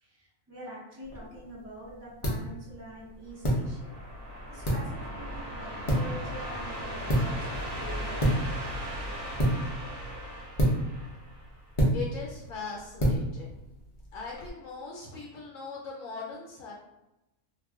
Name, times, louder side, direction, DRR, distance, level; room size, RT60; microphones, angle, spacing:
voice 1, 0.0-4.0 4.5-8.2, right 1 dB, 20° right, -7 dB, 0.4 m, -45 dB
sound 1, 1.0-14.5, equal, 40° left, 0.5 m, -31 dB
sound 2, 3.3-11.8, equal, 70° right, 0.9 m, -38 dB
voice 2, 11.9-13.5 14.1-16.7, left 4 dB, 75° left, -2 dB, 0.9 m, -40 dB
2.3 x 2.1 x 3.4 m, 0.95 s
omnidirectional pair, 1.4 m